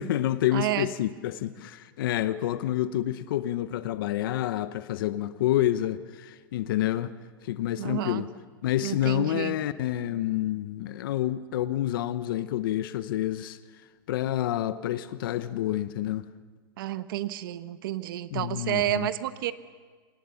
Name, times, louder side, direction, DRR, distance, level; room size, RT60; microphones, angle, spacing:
voice 1, 0.0-7.1 7.4-8.3 8.6-13.6 14.1-16.3 18.3-19.1, left 13 dB, 70° left, 0.9 m, -28 dB
voice 2, 0.5-0.9 7.8-8.3 8.8-9.5 16.8-19.5, right 13 dB, 70° right, 1.1 m, -30 dB
27.0 x 18.5 x 7.1 m
supercardioid pair, 145°, 12 cm